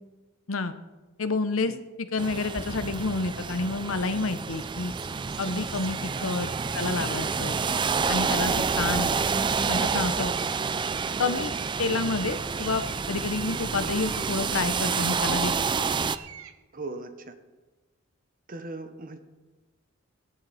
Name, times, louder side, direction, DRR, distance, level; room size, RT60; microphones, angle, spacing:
voice 1, 1.2-4.9 5.4-6.5 6.7-7.5 8.1-9.1 9.7-10.3 11.2-15.5, left 3 dB, 70° left, 10 dB, 0.9 m, -29 dB
sound 1, 2.2-16.2, right 5 dB, 20° right, 0.3 m, -28 dB
sound 2, 4.5-16.6, right 9 dB, 75° right, 0.9 m, -46 dB
voice 2, 16.7-17.3 18.5-19.2, right 2 dB, 40° right, 8 dB, 1.1 m, -39 dB
17.0 x 11.5 x 4.2 m, 1.2 s
head